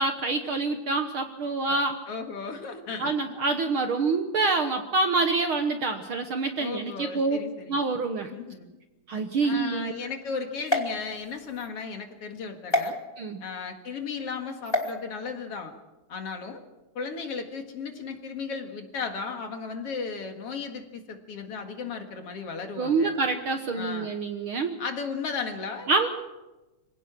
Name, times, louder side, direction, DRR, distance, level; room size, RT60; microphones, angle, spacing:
voice 1, 0.0-2.0 3.0-7.4 7.7-8.3 9.1-9.9 13.2-13.4 22.8-24.8 25.9-26.1, right 3 dB, 55° right, 6 dB, 1.6 m, -26 dB
voice 2, 2.1-3.1 6.6-7.7 8.3-8.7 9.4-13.0 13.4-15.7 16.1-16.6 17.0-23.1 23.7-24.1 24.8-25.9, left 5 dB, 55° left, 5 dB, 2.6 m, -35 dB
sound 1, 10.6-11.7 12.7-12.9 14.6-14.9, left 1 dB, 10° left, 1.8 m, -28 dB
26.0 x 17.0 x 6.0 m, 1.1 s
omnidirectional pair, 3.4 m